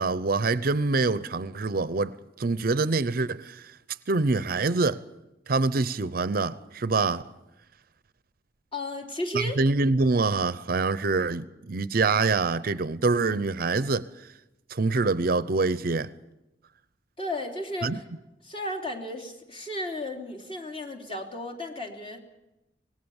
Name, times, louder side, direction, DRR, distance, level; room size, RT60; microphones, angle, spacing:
voice 1, 0.0-3.7 4.1-5.0 5.5-7.2 9.3-14.1 14.7-16.1 17.8-18.0, right 3 dB, 55° right, 0.7 m, -25 dB
voice 2, 8.7-9.6 17.2-18.0 18.4-22.2, left 1 dB, 30° left, 3.3 m, -34 dB
25.0 x 19.5 x 7.2 m
head